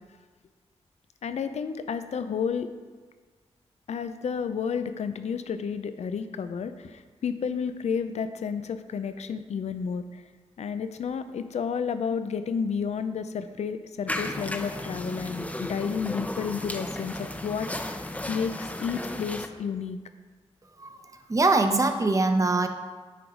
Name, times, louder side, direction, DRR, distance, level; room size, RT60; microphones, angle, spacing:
voice 1, 1.2-2.7 3.9-10.2 10.6-20.0, left 6 dB, 80° left, 10 dB, 0.5 m, -31 dB
sound 1, 14.1-19.5, left 1 dB, 15° left, 0.6 m, -34 dB
voice 2, 21.3-22.7, right 3 dB, 30° right, 7 dB, 0.8 m, -22 dB
9.2 x 4.6 x 4.9 m, 1.4 s
wide cardioid pair, 80°, 11 cm